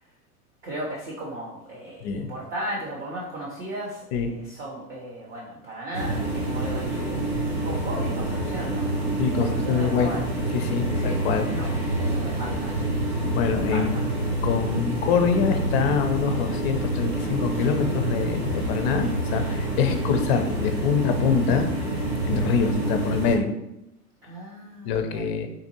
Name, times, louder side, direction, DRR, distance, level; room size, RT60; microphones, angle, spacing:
voice 1, 0.6-7.2 7.6-9.0 9.4-10.2 11.0-11.2 11.5-11.7 12.0-12.8 13.7-14.0 17.5-17.7 19.4-19.5 24.2-25.3, right 1 dB, 25° right, -4 dB, 0.5 m, -36 dB
voice 2, 2.0-2.3 4.1-4.3 9.2-10.1 10.5-11.5 13.3-14.0 14.4-21.7 22.2-23.5 24.8-25.5, left 6 dB, 45° left, 6 dB, 0.5 m, -25 dB
sound 1, 5.9-23.4, right 1 dB, 85° right, 1.3 m, -27 dB
3.8 x 2.5 x 2.7 m, 0.86 s
hypercardioid pair, 105°, 46 cm